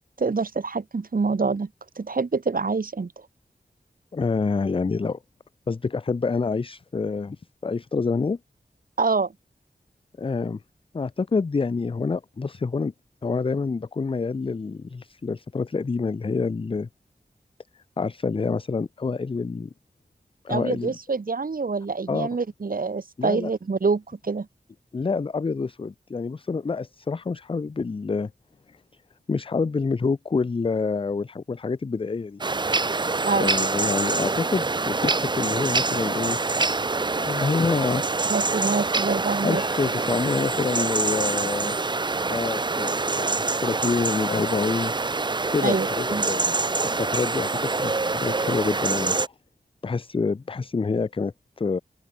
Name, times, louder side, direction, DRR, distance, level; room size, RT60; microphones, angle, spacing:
voice 1, 0.2-1.7 2.0-3.1 9.0-9.3 20.5-24.5 33.2-33.5 38.3-39.6 45.6-46.3, right 4 dB, 55° right, 1.4 m, -26 dB
voice 2, 4.1-5.2 5.7-7.4 7.6-8.4 10.2-10.6 10.9-12.9 13.2-16.9 18.0-19.7 20.4-21.0 22.1-22.3 23.2-23.5 24.9-28.3 28.7-28.8 29.3-32.4 33.3-36.4 37.1-38.2 39.4-41.8 42.3-44.9 45.5-49.1 49.8-51.8, left 4 dB, 30° left, 0.4 m, -27 dB
sound 1, 32.4-49.3, right 3 dB, 25° right, 0.5 m, -25 dB
sound 2, 39.1-43.0, left 3 dB, 55° left, 4.6 m, -48 dB
open air
wide cardioid pair, 90°, 17 cm